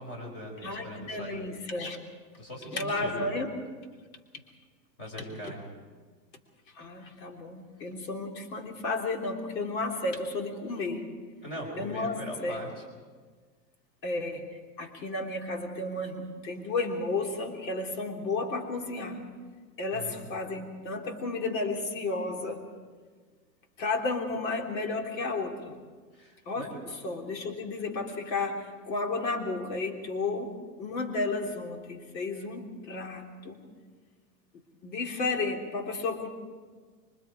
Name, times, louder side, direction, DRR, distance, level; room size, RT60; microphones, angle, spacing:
voice 1, 0.0-1.4 2.4-3.3 5.0-5.6 11.4-12.8 19.9-20.3 26.1-26.8, equal, 20° left, 1 dB, 5.1 m, -40 dB
voice 2, 0.6-2.0 2.7-3.5 5.4-5.5 6.8-11.1 11.8-12.6 14.0-19.2 19.8-22.7 23.8-25.7 26.5-33.6 34.8-36.3, left 3 dB, 85° left, 1 dB, 3.7 m, -33 dB
25.0 x 24.5 x 4.9 m, 1.5 s
supercardioid pair, 175°, 50 cm